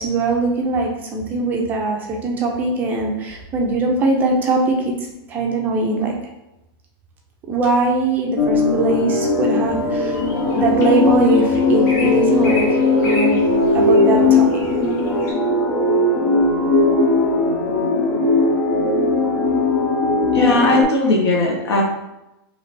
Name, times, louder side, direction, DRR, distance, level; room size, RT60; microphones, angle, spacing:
voice 1, 0.0-4.9 5.3-6.2 7.5-10.2 10.5-13.4 13.7-14.4, right 3 dB, 15° right, 0 dB, 0.4 m, -21 dB
sound 1, 8.4-20.8, left 3 dB, 65° left, 1.0 m, -18 dB
sound 2, 9.6-15.3, left 2 dB, 45° left, 1.3 m, -35 dB
voice 2, 20.3-21.8, left 1 dB, 85° left, -1 dB, 1.3 m, -18 dB
3.2 x 2.9 x 4.1 m, 0.90 s
supercardioid pair, 175°, 13 cm